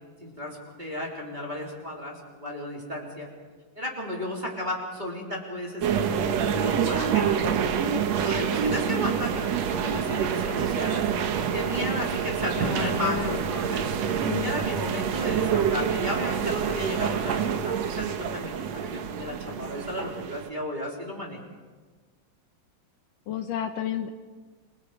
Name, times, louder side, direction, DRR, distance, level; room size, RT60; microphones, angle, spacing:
voice 1, 0.2-3.3 3.7-21.4, left 1 dB, 15° right, -2 dB, 3.4 m, -34 dB
sound 1, 5.8-20.5, right 7 dB, 60° right, 1.9 m, -27 dB
voice 2, 12.6-13.4 14.3-14.5 23.3-24.1, left 10 dB, 70° left, 7 dB, 2.4 m, -31 dB
28.5 x 23.0 x 5.0 m, 1.4 s
omnidirectional pair, 4.1 m